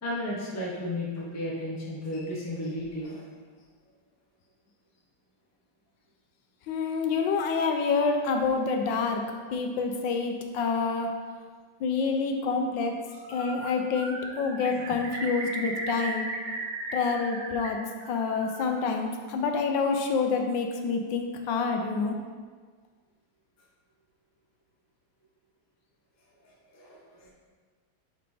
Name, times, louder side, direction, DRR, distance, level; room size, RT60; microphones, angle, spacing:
voice 1, 0.0-3.2 26.7-27.3, left 1 dB, 15° left, -5 dB, 0.5 m, -34 dB
voice 2, 6.7-9.2 9.5-11.1 11.8-12.9 13.3-16.3 16.9-17.8 18.1-22.2, left 4 dB, 80° left, 3 dB, 1.3 m, -27 dB
Bird, 13.1-13.7 13.9-17.7 18.0-18.8, right 2 dB, 50° right, 0.6 m, -37 dB
5.8 x 3.4 x 4.9 m, 1.5 s
omnidirectional pair, 2.0 m